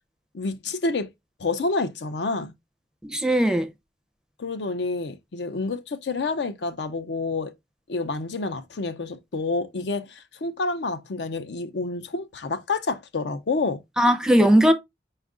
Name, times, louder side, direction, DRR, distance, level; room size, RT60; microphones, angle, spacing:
voice 1, 0.3-1.1 1.4-2.5 4.4-7.5 7.9-13.8, left 3 dB, 70° left, 0.5 m, -28 dB
voice 2, 3.1-3.7 14.0-14.7, equal, 5° right, 0.5 m, -18 dB
5.2 x 2.3 x 3.6 m
head